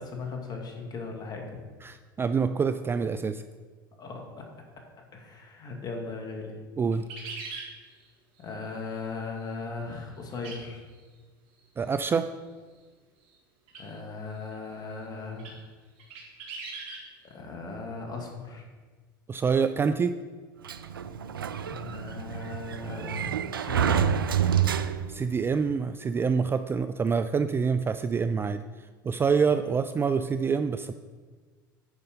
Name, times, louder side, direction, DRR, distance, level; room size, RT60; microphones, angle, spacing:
voice 1, 0.0-1.6 4.0-4.5 5.1-6.6 8.4-10.8 13.8-15.7 17.2-18.7 21.6-24.1, left 4 dB, 35° left, 1 dB, 2.1 m, -38 dB
voice 2, 1.8-3.4 6.8-7.1 11.8-12.3 19.3-20.2 25.1-28.6 29.0-30.9, right 5 dB, 20° right, 10 dB, 0.3 m, -26 dB
sound 1, 6.9-7.7 10.4-10.6 10.9-11.0 13.7-13.9 14.5-14.6 15.4-15.6 16.0-17.0, right 4 dB, 55° right, 2.2 m, -39 dB
Sliding door, 20.6-25.3, right 8 dB, 90° right, 0.4 m, -28 dB
9.5 x 5.4 x 5.3 m, 1.4 s
hypercardioid pair, 80°, 11 cm